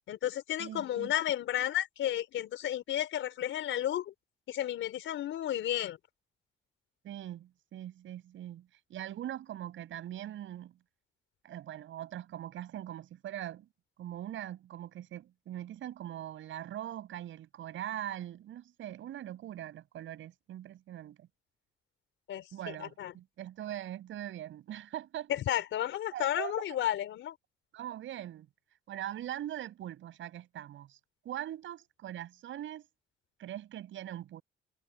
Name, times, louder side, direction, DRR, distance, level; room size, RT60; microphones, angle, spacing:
voice 1, 0.1-4.1 4.5-6.0 22.3-22.5 22.8-23.1 25.3-27.3, left 12 dB, 80° left, 4.8 m, -32 dB
voice 2, 0.6-1.1 7.0-10.7 11.4-13.7 14.0-21.3 22.5-25.3 26.1-26.6 27.7-28.5 28.9-31.0 31.2-32.9 33.4-34.4, right 12 dB, 75° right, 8.0 m, -41 dB
cardioid pair, 90°, 20 cm